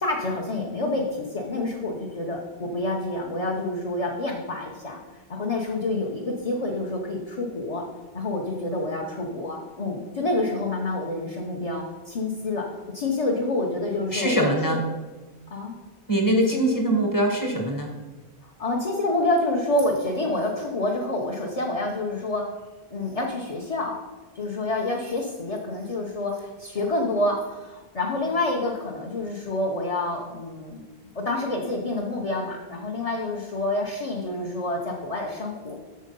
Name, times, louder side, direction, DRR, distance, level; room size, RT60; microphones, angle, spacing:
voice 1, 0.0-5.0 5.3-7.8 8.1-14.8 15.5-15.7 16.5-16.7 18.4-22.4 22.9-24.0 24.3-30.8 31.1-35.8, left 2 dB, 35° left, 0 dB, 0.9 m, -28 dB
voice 2, 14.1-14.8 16.1-17.9, right 1 dB, 20° left, 2 dB, 1.4 m, -22 dB
7.9 x 6.4 x 5.4 m, 1.2 s
omnidirectional pair, 1.1 m